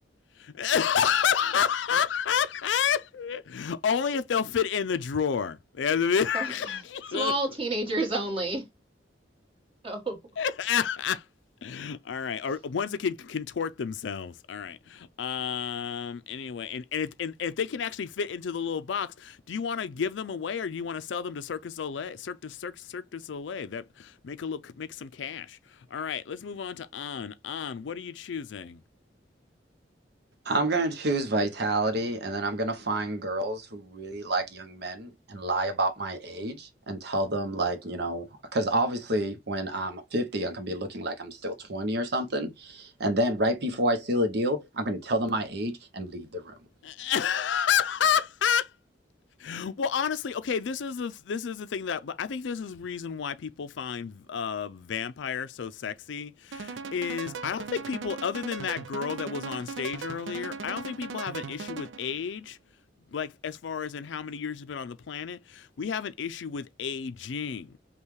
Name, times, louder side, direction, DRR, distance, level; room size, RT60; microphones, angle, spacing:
voice 1, 0.4-7.3 10.4-11.2 11.6-25.6 25.9-28.8 46.8-48.7 49.4-62.6 63.1-67.8, left 7 dB, 85° left, 0.4 m, -30 dB
voice 2, 6.3-6.8 7.1-8.6 9.8-10.2, right 2 dB, 30° right, 1.7 m, -30 dB
voice 3, 30.5-46.5, right 1 dB, 60° right, 0.8 m, -29 dB
sound 1, 56.5-62.2, right 5 dB, 85° right, 0.5 m, -38 dB
5.4 x 2.3 x 3.1 m
head